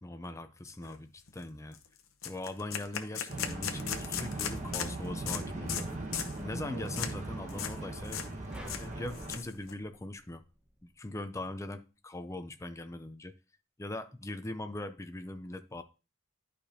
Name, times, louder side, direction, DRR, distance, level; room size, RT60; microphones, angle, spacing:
voice 1, 0.0-1.8 2.2-5.9 6.4-8.2 8.7-10.4 10.8-13.3 13.8-15.8, left 1 dB, 15° left, 0.5 m, -41 dB
sound 1, 0.8-1.0 1.3-1.4 1.7-1.9 2.2-4.9 5.3-5.4 5.7-5.9 6.1-6.4 6.9-7.1 7.5-7.8 8.0-8.3 8.5-9.7, left 9 dB, 90° left, 0.9 m, -37 dB
sound 2, 3.3-9.4, right 2 dB, 35° right, 1.4 m, -39 dB
sound 3, 8.5-10.9, right 1 dB, 5° right, 1.1 m, -50 dB
11.0 x 5.0 x 2.8 m
head